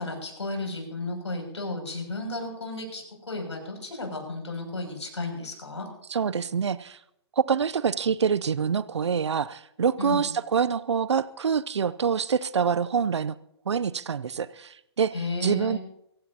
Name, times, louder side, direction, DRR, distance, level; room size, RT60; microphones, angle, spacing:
voice 1, 0.0-5.9 10.0-10.3 15.1-15.8, left 2 dB, 85° left, 2 dB, 6.5 m, -33 dB
voice 2, 6.1-7.0 7.4-13.4 13.7-15.1 15.4-15.8, right 6 dB, 80° right, 17 dB, 0.6 m, -26 dB
24.5 x 15.5 x 2.8 m, 0.79 s
hypercardioid pair, 130°, 14 cm